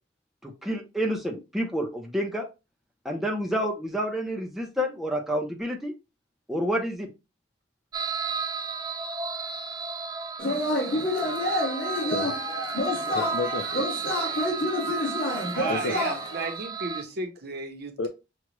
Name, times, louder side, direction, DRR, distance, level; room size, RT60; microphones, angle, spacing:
voice 1, 0.4-2.5 3.0-5.9 6.5-7.1, equal, ahead, 0.7 m, -29 dB
sound 1, 7.9-17.0, right 5 dB, 20° right, 0.3 m, -33 dB
Yell / Cheering, 10.4-16.5, left 1 dB, 55° left, 2.1 m, -29 dB
voice 2, 12.1-12.6 13.1-13.9 15.7-16.0 18.0-18.1, left 3 dB, 70° left, 0.4 m, -31 dB
voice 3, 15.5-18.1, right 3 dB, 60° right, 1.0 m, -33 dB
5.9 x 2.4 x 3.0 m
head